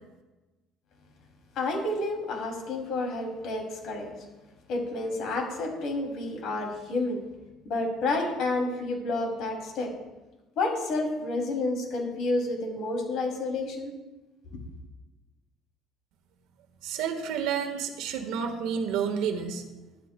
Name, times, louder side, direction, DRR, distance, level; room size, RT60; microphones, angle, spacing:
voice 1, 1.5-4.1 4.7-7.2 7.6-9.9 10.6-13.9 14.5-14.6, left 2 dB, 50° left, 1 dB, 2.7 m, -30 dB
voice 2, 16.8-19.6, right 7 dB, 80° right, 5 dB, 1.4 m, -30 dB
18.0 x 11.0 x 2.3 m, 1.1 s
cardioid pair, 180°, 0 cm